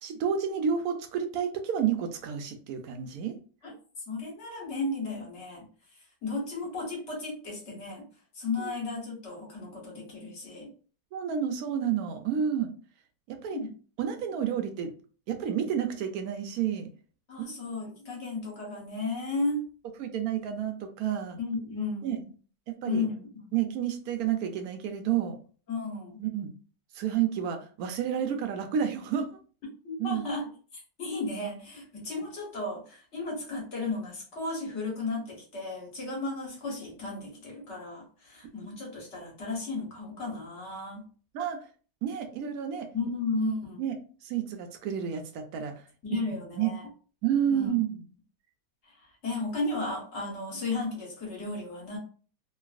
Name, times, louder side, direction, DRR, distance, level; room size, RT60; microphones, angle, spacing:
voice 1, 0.0-3.3 8.6-8.7 11.1-12.7 13.3-13.6 14.0-14.9 15.3-16.9 17.4-17.5 20.0-21.4 22.0-22.2 22.7-23.1 23.5-25.4 26.2-26.5 26.9-29.3 30.0-30.2 41.3-41.6 42.0-42.9 43.8-44.0 44.2-45.7 46.5-46.7 47.2-47.9, right 8 dB, 70° right, 6 dB, 0.9 m, -30 dB
voice 2, 4.1-5.6 6.2-8.1 8.3-10.7 13.5-13.7 17.3-19.6 21.4-22.3 22.8-23.6 25.7-26.2 29.8-30.5 31.0-41.0 42.9-43.8 46.0-46.8 47.5-47.8 48.8-49.0 49.2-52.0, left 3 dB, 45° left, -2 dB, 1.3 m, -34 dB
3.0 x 2.5 x 2.4 m, 0.40 s
omnidirectional pair, 1.8 m